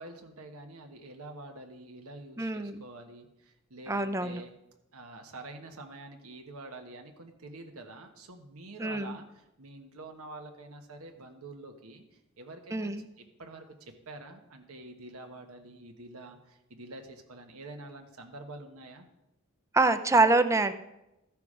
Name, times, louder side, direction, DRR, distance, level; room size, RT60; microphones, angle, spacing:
voice 1, 0.0-4.5 4.9-12.9 13.2-19.1, right 2 dB, 85° right, 4 dB, 1.2 m, -47 dB
voice 2, 2.4-2.8 3.9-4.4 8.8-9.1 12.7-13.0 19.7-20.7, right 3 dB, 15° right, 11 dB, 0.5 m, -25 dB
13.5 x 5.9 x 4.9 m, 0.90 s
head